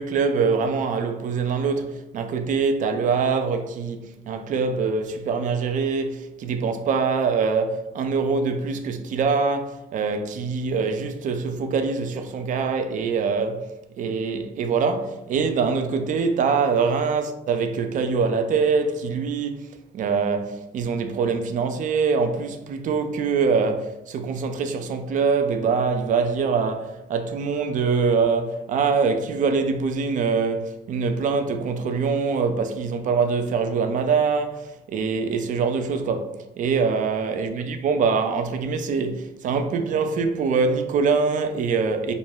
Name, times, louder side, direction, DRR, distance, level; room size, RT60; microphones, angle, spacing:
voice 1, 0.0-13.7 14.0-19.7 19.9-42.1, right 5 dB, 50° right, 0.4 m, -24 dB
2.6 x 2.2 x 3.2 m
cardioid pair, 110°, 17 cm